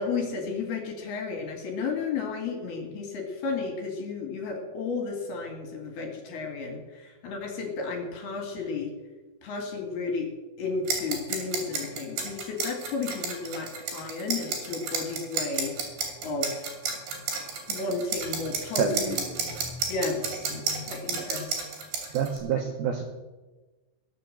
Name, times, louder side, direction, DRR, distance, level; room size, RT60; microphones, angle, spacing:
voice 1, 0.0-8.9 9.4-10.3 10.6-15.7 16.2-16.7 17.7-19.2 19.9-20.6 20.9-21.5, left 4 dB, 60° left, 3 dB, 3.3 m, -33 dB
sound 1, 10.9-22.4, right 5 dB, 55° right, 4.6 m, -32 dB
voice 2, 18.8-19.4 21.1-21.3 22.1-23.0, right 7 dB, 85° right, 4 dB, 2.1 m, -28 dB
20.5 x 7.0 x 7.7 m, 1.2 s
omnidirectional pair, 5.9 m